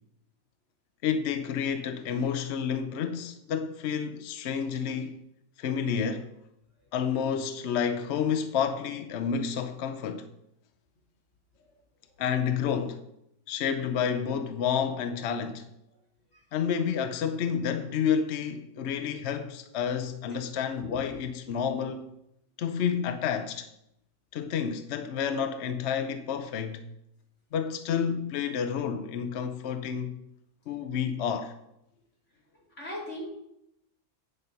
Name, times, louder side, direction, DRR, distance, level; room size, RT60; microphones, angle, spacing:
voice 1, 1.0-5.2 5.6-6.3 6.9-10.3 12.2-13.0 13.5-15.7 16.5-22.1 22.6-23.7 24.3-26.8 27.5-30.1 30.7-31.5, left 7 dB, 65° left, 0.7 m, -30 dB
voice 2, 32.8-33.3, left 1 dB, 45° left, 3.5 m, -38 dB
10.0 x 5.4 x 5.7 m
omnidirectional pair, 1.7 m